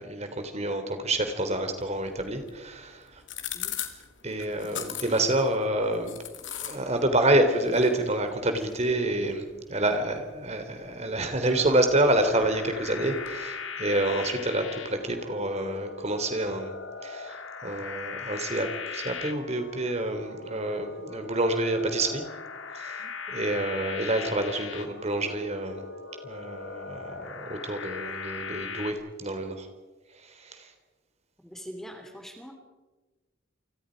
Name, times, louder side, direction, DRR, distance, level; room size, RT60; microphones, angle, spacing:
voice 1, 0.0-3.0 4.2-6.2 6.6-16.7 17.0-22.2 22.7-23.0 23.3-25.8 26.2-29.7 30.4-30.6, right 1 dB, 35° right, 7 dB, 3.4 m, -28 dB
sound 1, 1.8-13.4, left 10 dB, 70° left, 3.1 m, -43 dB
sound 2, 11.4-28.9, left 5 dB, 85° left, 2.3 m, -39 dB
voice 2, 31.4-32.5, equal, ahead, 4 dB, 2.9 m, -43 dB
29.5 x 24.5 x 5.3 m, 1.2 s
head